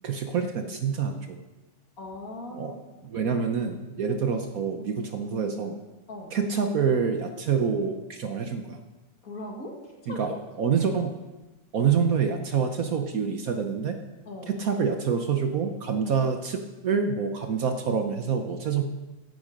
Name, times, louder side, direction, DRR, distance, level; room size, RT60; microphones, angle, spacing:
voice 1, 0.0-1.4 2.5-2.7 3.0-5.8 6.3-8.8 10.1-11.2 11.7-14.0 14.5-18.8, right 6 dB, 60° right, 6 dB, 1.2 m, -27 dB
voice 2, 2.0-3.1 6.1-6.4 9.2-10.3 10.6-10.7 11.9-12.0 14.3-14.6 16.0-16.3, left 1 dB, 50° left, 1 dB, 2.3 m, -40 dB
14.5 x 9.4 x 5.2 m, 1.1 s
omnidirectional pair, 1.9 m